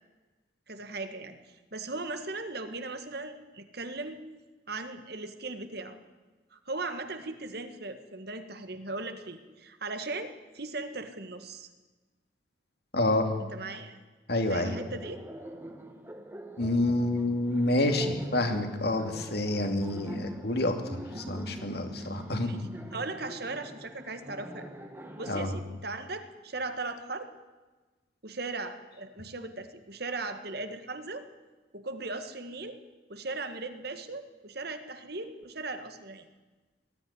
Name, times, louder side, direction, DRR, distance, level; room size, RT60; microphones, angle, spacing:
voice 1, 0.7-4.2 4.7-6.0 6.5-11.7 13.4-14.0 14.5-15.2 21.9-22.1 22.4-24.7 25.2-27.3 28.2-31.3 31.7-32.8 33.1-36.2, right 3 dB, 55° right, 8 dB, 1.7 m, -38 dB
voice 2, 12.9-13.3 14.3-14.8 16.6-22.5 25.3-25.6, left 1 dB, 55° left, 6 dB, 2.5 m, -28 dB
Laughter, 14.6-25.5, right 1 dB, 10° right, 1.6 m, -44 dB
19.5 x 13.5 x 9.8 m, 1.3 s
head